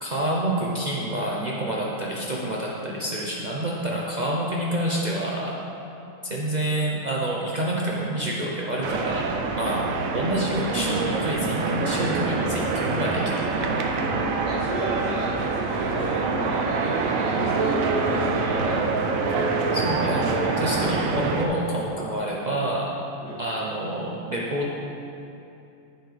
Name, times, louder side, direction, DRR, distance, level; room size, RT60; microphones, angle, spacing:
voice 1, 0.0-5.6 6.2-9.3 9.6-9.8 10.1-14.1 19.7-22.9 23.4-24.7, right 1 dB, 40° right, -4 dB, 0.7 m, -28 dB
sound 1, 8.8-21.5, right 4 dB, 90° right, 1.1 m, -25 dB
voice 2, 14.4-18.8 23.2-23.4, right 1 dB, 65° right, -10 dB, 1.8 m, -32 dB
10.0 x 7.0 x 3.3 m, 2.8 s
omnidirectional pair, 1.4 m